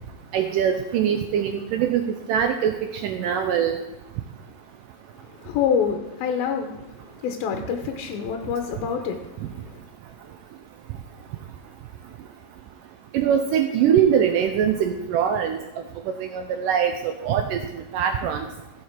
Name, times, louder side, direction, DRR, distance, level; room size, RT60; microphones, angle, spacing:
voice 1, 0.3-2.8 3.0-3.8 13.1-15.6 16.1-17.6 17.9-18.5, right 8 dB, 75° right, 6 dB, 2.1 m, -22 dB
voice 2, 5.4-9.7, left 7 dB, 85° left, 3 dB, 2.7 m, -27 dB
16.0 x 6.5 x 4.5 m, 0.97 s
omnidirectional pair, 4.2 m